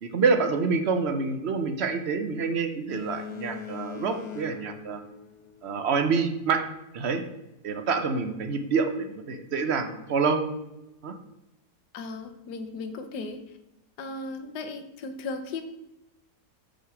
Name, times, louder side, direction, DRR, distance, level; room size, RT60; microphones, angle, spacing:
voice 1, 0.0-5.0 5.6-6.6 6.9-7.2 7.6-10.5 11.0-11.1, right 5 dB, 50° right, 7 dB, 0.8 m, -27 dB
Boat Water vehicle, 2.9-6.0, left 8 dB, 50° left, 1.1 m, -41 dB
voice 2, 11.9-13.6 14.0-15.6, left 3 dB, 75° left, 7 dB, 1.4 m, -36 dB
6.5 x 4.8 x 6.0 m, 0.92 s
omnidirectional pair, 1.8 m